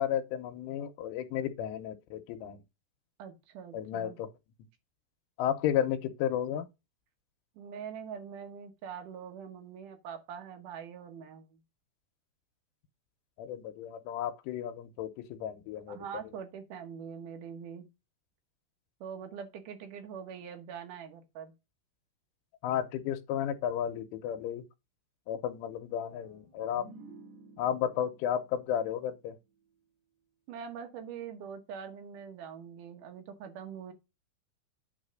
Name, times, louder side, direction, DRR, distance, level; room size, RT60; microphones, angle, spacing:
voice 1, 0.0-2.6 3.7-4.3 5.4-6.7 13.4-16.0 22.6-24.6 25.3-26.9 27.6-29.4, left 10 dB, 90° left, 3.4 m, -33 dB
voice 2, 3.2-4.2 7.6-11.6 15.9-17.9 19.0-21.5 30.5-33.9, right 7 dB, 85° right, 1.8 m, -43 dB
sound 1, 26.1-29.8, right 3 dB, 60° right, 4.7 m, -54 dB
9.7 x 3.3 x 6.3 m
omnidirectional pair, 5.5 m